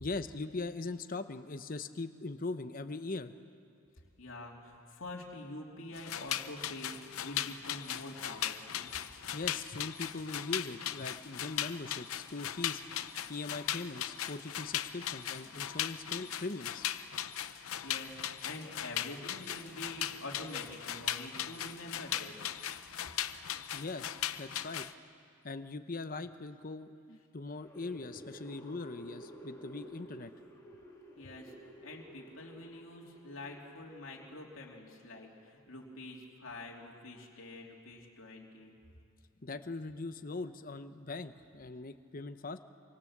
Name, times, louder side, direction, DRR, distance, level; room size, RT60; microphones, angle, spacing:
voice 1, 0.0-3.3 9.3-12.8 13.3-16.9 23.7-24.9 25.4-30.3 39.4-42.6, left 3 dB, 40° left, 10 dB, 0.8 m, -41 dB
voice 2, 4.2-8.9 17.6-22.5 31.2-38.8, left 2 dB, 65° left, -1 dB, 3.0 m, -46 dB
sound 1, 5.9-24.9, left 11 dB, 80° left, 0.8 m, -38 dB
sound 2, 27.5-34.7, right 1 dB, 15° left, 3.3 m, -52 dB
27.5 x 25.0 x 7.4 m, 2.4 s
head